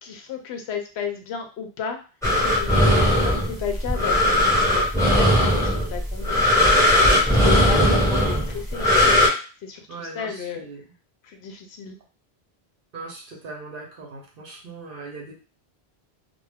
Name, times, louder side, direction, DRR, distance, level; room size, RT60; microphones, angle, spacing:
voice 1, 0.0-2.0 2.6-6.4 7.1-9.1 9.6-10.7 11.2-12.0, left 6 dB, 90° left, 4 dB, 0.8 m, -33 dB
sound 1, 2.2-9.3, left 1 dB, 5° left, 0.9 m, -19 dB
voice 2, 9.9-10.8 12.9-15.3, right 3 dB, 60° right, -1 dB, 0.8 m, -39 dB
2.2 x 2.2 x 3.3 m, 0.35 s
omnidirectional pair, 1.1 m